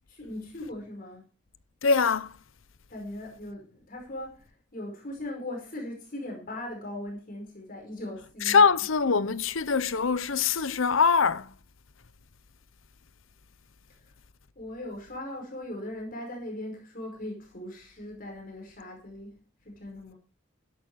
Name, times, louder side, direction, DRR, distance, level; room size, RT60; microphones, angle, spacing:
voice 1, 0.1-1.3 2.9-8.7 14.0-14.1 14.5-20.1, left 1 dB, 45° left, 5.0 m, -39 dB
voice 2, 1.8-2.3 8.4-11.5, left 5 dB, 85° left, 0.8 m, -23 dB
13.0 x 11.0 x 4.7 m
head